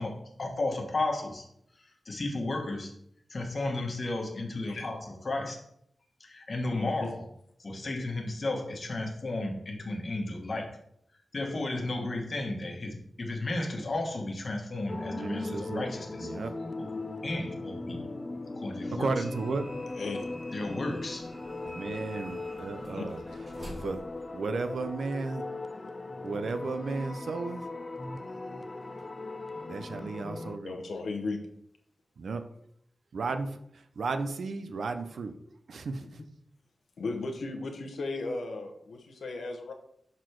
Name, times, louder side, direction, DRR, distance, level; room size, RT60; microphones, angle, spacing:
voice 1, 0.0-1.5 2.0-2.9 3.3-5.7 6.2-7.2 7.6-10.8 11.3-16.3 17.2-18.0 18.5-19.2 20.5-21.3, left 2 dB, 45° left, 2 dB, 1.3 m, -33 dB
voice 2, 6.7-7.1 19.9-20.3 22.9-23.0 30.6-31.4 37.0-39.7, left 3 dB, 85° left, 3 dB, 1.0 m, -36 dB
sound 1, 14.9-30.6, left 2 dB, 25° left, 0.4 m, -39 dB
voice 3, 15.0-15.9 16.2-16.5 19.0-19.6 21.6-23.2 23.8-24.0 24.3-25.5 26.2-27.6 29.7-30.8 32.2-32.4 33.1-35.4 35.7-36.2, right 4 dB, 80° right, 9 dB, 0.6 m, -34 dB
sound 2, 19.2-25.0, equal, 40° right, 2.1 m, -48 dB
6.6 x 4.1 x 4.5 m, 0.71 s
wide cardioid pair, 125°, 0 cm